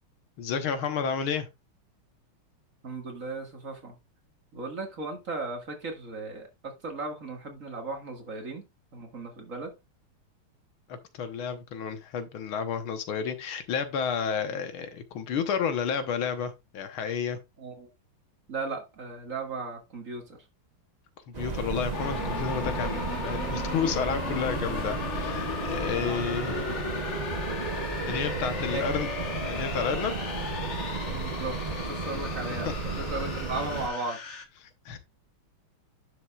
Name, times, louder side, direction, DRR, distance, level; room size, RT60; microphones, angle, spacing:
voice 1, 0.4-1.5 10.9-17.4 21.3-26.5 28.1-29.1 29.5-30.1 34.6-35.0, left 6 dB, 80° left, 1.9 m, -31 dB
voice 2, 2.8-4.0 4.5-8.6 8.9-9.8 17.6-17.9 18.5-20.4 25.8-26.2 26.5-26.7 28.7-29.0 31.1-31.6 31.9-34.2, right 3 dB, 40° right, 2.1 m, -36 dB
sound 1, 21.3-33.9, right 4 dB, 80° right, 0.3 m, -34 dB
sound 2, 21.9-34.4, left 4 dB, 40° left, 1.3 m, -36 dB
10.5 x 6.7 x 2.4 m
omnidirectional pair, 2.3 m